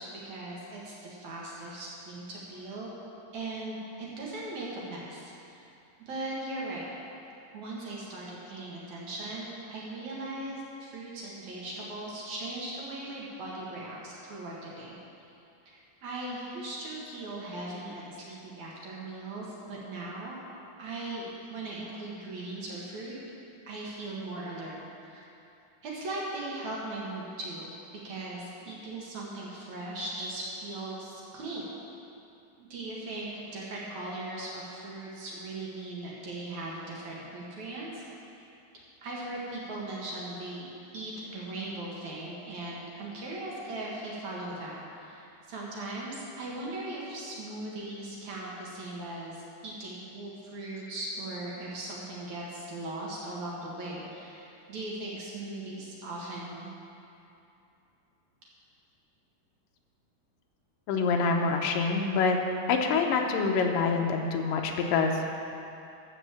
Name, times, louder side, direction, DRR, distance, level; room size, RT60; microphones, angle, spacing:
voice 1, 0.0-2.9 3.3-5.6 6.1-6.9 7.5-15.0 15.7-20.4 20.8-23.1 23.7-25.3 25.8-27.7 28.0-31.7 32.6-38.0 39.0-56.7, right 2 dB, 55° right, -5 dB, 2.7 m, -39 dB
voice 2, 60.9-62.4 62.7-65.2, left 4 dB, 75° left, 2 dB, 2.2 m, -26 dB
13.5 x 5.4 x 7.4 m, 2.7 s
omnidirectional pair, 4.5 m